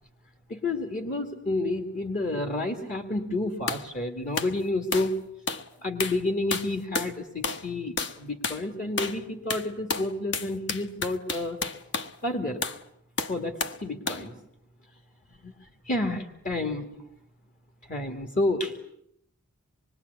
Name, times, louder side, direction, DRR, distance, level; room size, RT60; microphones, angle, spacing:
voice 1, 0.5-5.2 5.8-11.6 12.2-12.6 13.3-14.4 15.4-15.5 15.9-16.9 17.9-18.8, left 2 dB, 40° left, 5 dB, 2.1 m, -30 dB
sound 1, 3.7-3.9 4.4-4.6 4.9-5.2 5.5-5.7 6.0-6.2 6.5-7.1 7.4-7.7 8.0-8.2 8.4-8.6 9.0-9.2 9.5-12.1 12.6-12.8 13.2-13.8 14.1-14.3, left 4 dB, 55° left, 1.3 m, -31 dB
26.0 x 22.5 x 9.5 m, 0.74 s
head